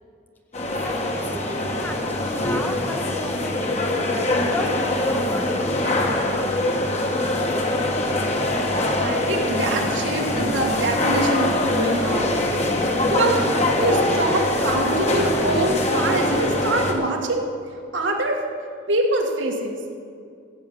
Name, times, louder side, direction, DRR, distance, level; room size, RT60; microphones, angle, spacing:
sound 1, 0.5-16.9, left 1 dB, 35° left, 1.2 m, -23 dB
voice 1, 0.8-3.7 4.3-6.7, left 1 dB, 10° left, 5 dB, 0.7 m, -35 dB
voice 2, 9.0-12.3 13.1-13.4 13.8-17.5 17.9-18.4 18.9-19.8, right 2 dB, 80° right, 1 dB, 1.7 m, -24 dB
15.5 x 7.9 x 6.9 m, 2.3 s
head